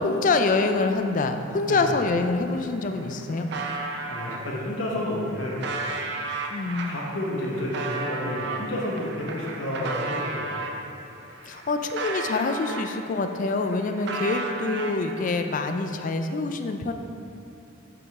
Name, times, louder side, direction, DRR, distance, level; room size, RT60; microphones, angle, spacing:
voice 1, 0.0-3.5 6.5-7.0 11.4-16.9, left 3 dB, 40° left, 7 dB, 0.4 m, -25 dB
sound 1, 2.5-2.6 2.8-4.4 5.0-10.8 11.3-13.2 13.5-15.3, right 3 dB, 55° right, 0.6 m, -34 dB
voice 2, 4.1-5.7 6.9-10.6, left 1 dB, 65° left, -4 dB, 1.1 m, -30 dB
7.9 x 5.1 x 3.6 m, 2.9 s
head